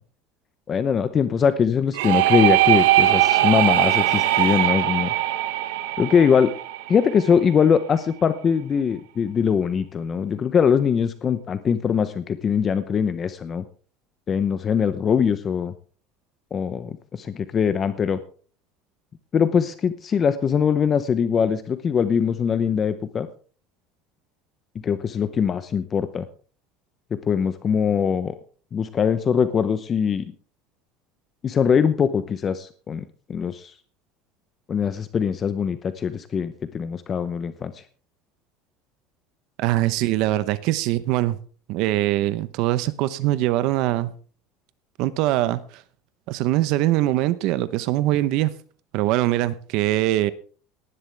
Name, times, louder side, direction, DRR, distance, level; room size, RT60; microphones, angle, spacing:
voice 1, 0.7-5.1 6.0-6.5 6.9-13.6 14.3-15.7 16.5-18.2 19.3-23.3 24.8-26.2 27.1-28.3 28.7-30.3 31.4-33.0 33.3-33.7 34.7-37.8, left 7 dB, 25° left, 0.8 m, -22 dB
sound 1, 1.9-7.6, right 15 dB, 90° right, 1.3 m, -20 dB
voice 2, 39.6-41.4 41.7-44.1 45.0-45.8 46.3-48.5 48.9-50.3, right 15 dB, 60° right, 0.9 m, -22 dB
18.0 x 11.5 x 3.4 m
cardioid pair, 150°, 0 cm